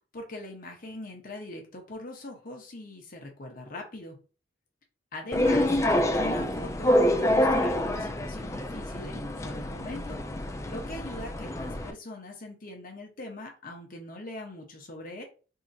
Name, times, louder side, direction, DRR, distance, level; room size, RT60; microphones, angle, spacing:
voice 1, 0.1-4.2 5.1-15.2, left 2 dB, 50° left, 2 dB, 1.1 m, -41 dB
sound 1, 5.3-11.9, left 1 dB, 15° left, 0.3 m, -27 dB
3.7 x 2.8 x 2.8 m, 0.35 s
head